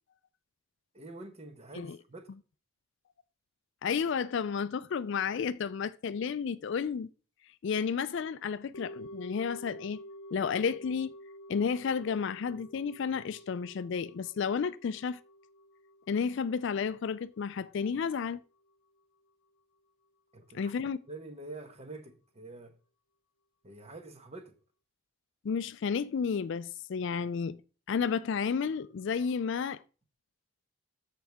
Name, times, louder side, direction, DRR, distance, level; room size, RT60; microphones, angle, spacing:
voice 1, 0.9-2.3 20.3-20.7 21.1-22.7 23.6-24.5, right 2 dB, 30° right, 1.1 m, -46 dB
voice 2, 3.8-7.1 7.6-10.0 10.3-11.1 11.5-15.2 16.1-18.4 20.5-21.0 25.4-27.6 27.9-29.8, left 6 dB, 55° left, 0.3 m, -32 dB
sound 1, 8.7-19.0 19.3-19.4, equal, 70° left, 0.8 m, -50 dB
13.5 x 4.7 x 3.5 m
head